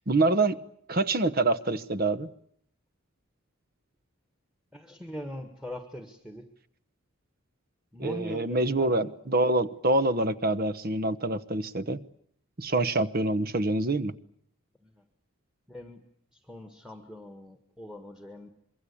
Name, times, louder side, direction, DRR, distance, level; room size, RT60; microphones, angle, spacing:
voice 1, 0.1-0.6 0.9-2.3 8.0-12.0 12.6-14.1, right 2 dB, 45° right, 15 dB, 1.0 m, -26 dB
voice 2, 4.7-6.5 7.9-8.9 14.8-15.0 15.7-16.0 16.3-18.5, left 1 dB, 5° right, 6 dB, 1.7 m, -42 dB
26.0 x 23.0 x 8.6 m, 0.68 s
head